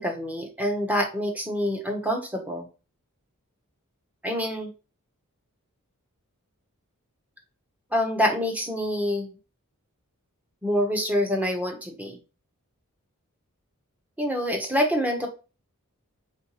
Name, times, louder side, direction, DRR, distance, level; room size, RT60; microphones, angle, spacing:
voice 1, 0.0-2.7 4.2-4.7 7.9-9.3 10.6-12.2 14.2-15.3, equal, 5° right, 3 dB, 0.9 m, -26 dB
4.3 x 3.9 x 3.0 m, 0.32 s
head